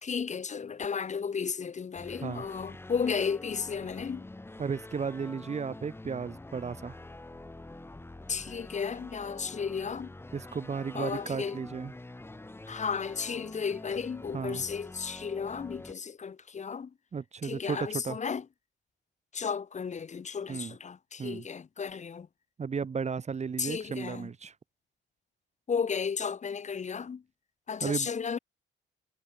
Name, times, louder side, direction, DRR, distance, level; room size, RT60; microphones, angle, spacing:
voice 1, 0.0-4.3 8.3-10.1 10.9-11.6 12.7-16.9 17.4-18.4 19.3-22.3 23.6-24.3 25.7-27.2 27.7-28.4, left 6 dB, 35° left, 1.1 m, -34 dB
sound 1, 1.9-15.9, left 2 dB, 10° left, 1.9 m, -46 dB
voice 2, 4.6-6.9 10.3-11.9 14.3-14.6 17.1-18.2 20.5-20.7 21.2-21.5 22.6-24.5 27.8-28.1, right 6 dB, 35° right, 1.2 m, -34 dB
cardioid pair, 90°, 20 cm